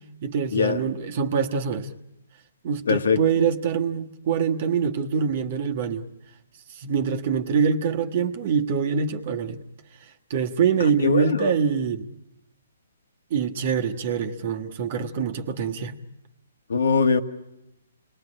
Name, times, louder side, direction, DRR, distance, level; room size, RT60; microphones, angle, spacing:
voice 1, 0.2-1.9 2.6-6.1 6.7-9.6 10.3-12.1 13.3-16.0, right 6 dB, 45° right, 1.3 m, -24 dB
voice 2, 2.9-3.2 11.0-11.5 16.7-17.2, left 5 dB, 70° left, 1.6 m, -21 dB
29.0 x 20.5 x 9.9 m
hypercardioid pair, 140°, 0 cm